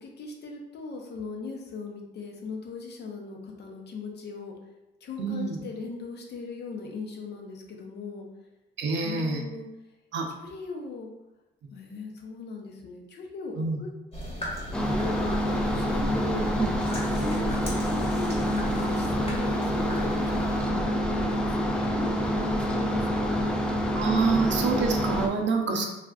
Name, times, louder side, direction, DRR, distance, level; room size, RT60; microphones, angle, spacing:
voice 1, 0.0-4.5 5.0-8.3 9.0-9.7 10.4-11.1 11.7-13.9 14.8-16.5 17.1-23.5 24.3-24.5 25.6-25.9, left 4 dB, 60° left, 1 dB, 0.7 m, -39 dB
voice 2, 5.2-5.6 8.8-9.4 10.1-10.3 13.5-13.8 16.6-16.7 24.0-25.9, right 4 dB, 65° right, 2 dB, 0.6 m, -26 dB
sound 1, 14.1-20.6, left 1 dB, 30° left, 1.1 m, -36 dB
sound 2, 14.7-25.3, equal, 5° left, 0.3 m, -27 dB
3.4 x 2.4 x 2.3 m, 0.95 s
cardioid pair, 90°, 20 cm